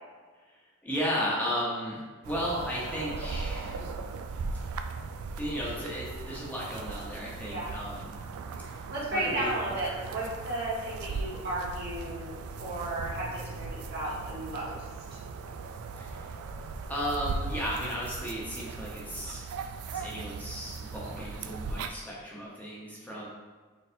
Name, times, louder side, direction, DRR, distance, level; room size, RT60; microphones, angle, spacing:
voice 1, 0.8-3.8 5.3-8.2 8.6-8.8 9.1-9.5 15.9-16.2 16.9-19.5 19.9-23.3, equal, 10° left, -5 dB, 0.8 m, -34 dB
sound 1, 2.2-21.9, right 4 dB, 85° right, 0.3 m, -38 dB
voice 2, 8.9-14.8 23.1-23.3, right 1 dB, 50° right, -6 dB, 1.3 m, -34 dB
4.3 x 4.0 x 2.6 m, 1.5 s
head